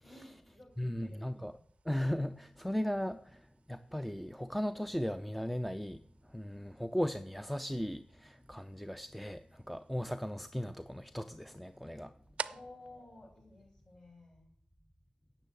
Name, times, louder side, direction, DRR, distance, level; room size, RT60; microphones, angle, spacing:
voice 1, 0.0-1.2 12.5-14.5, left 2 dB, 30° left, 1 dB, 6.4 m, -54 dB
sound 1, 0.7-14.3, right 6 dB, 65° right, 0.5 m, -52 dB
voice 2, 0.8-1.5 1.9-6.0 6.3-12.1, equal, 5° left, 11 dB, 0.5 m, -37 dB
10.0 x 6.8 x 8.4 m, 0.64 s
cardioid pair, 80°, 2 cm